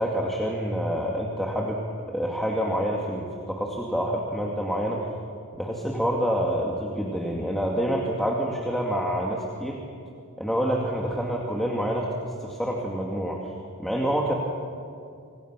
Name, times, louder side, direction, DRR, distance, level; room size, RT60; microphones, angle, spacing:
voice 1, 0.0-1.8 2.1-5.0 5.6-9.8 10.4-13.4 13.8-14.3, equal, ahead, -2 dB, 2.1 m, -27 dB
26.5 x 26.5 x 6.1 m, 2.4 s
head